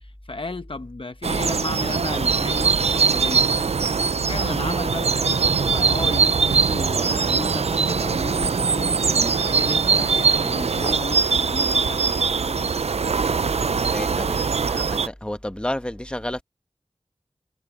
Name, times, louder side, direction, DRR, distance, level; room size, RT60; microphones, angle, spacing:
voice 1, 0.3-3.5 4.1-12.7, left 3 dB, 50° left, 0.9 m, -34 dB
sound 1, 1.2-15.1, right 5 dB, 65° right, 0.4 m, -22 dB
voice 2, 13.9-16.4, left 1 dB, 10° left, 1.1 m, -31 dB
wide cardioid pair, 55°, 11 cm